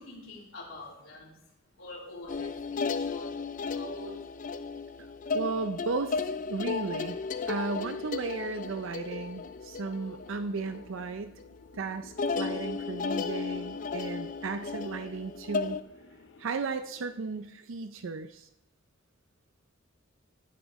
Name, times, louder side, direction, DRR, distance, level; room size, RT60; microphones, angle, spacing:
voice 1, 0.0-3.4 3.7-4.1, left 2 dB, 90° left, -4 dB, 3.4 m, -46 dB
sound 1, 2.3-11.1 11.4-11.8 12.2-15.8, left 4 dB, 40° left, 0.4 m, -34 dB
voice 2, 5.3-7.2 7.5-11.3 11.7-15.8 16.4-18.5, right 4 dB, 70° right, 9 dB, 0.5 m, -35 dB
sound 2, 6.6-17.7, left 2 dB, 65° left, 0.8 m, -54 dB
11.0 x 10.5 x 3.1 m, 0.80 s
head